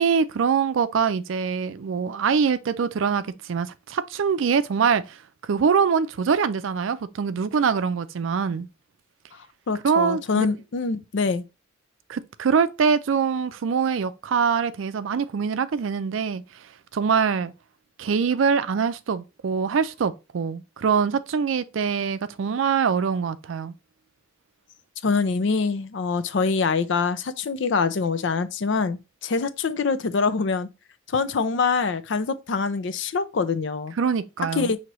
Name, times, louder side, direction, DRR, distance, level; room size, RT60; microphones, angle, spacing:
voice 1, 0.0-5.2 5.4-8.7 9.8-10.5 12.1-16.4 16.9-17.5 18.0-23.7 34.0-34.7, right 6 dB, 75° right, 0.4 m, -24 dB
voice 2, 9.7-11.4 25.0-30.7 31.1-33.9 34.6-34.8, left 4 dB, 65° left, 0.5 m, -24 dB
6.0 x 2.8 x 3.0 m
head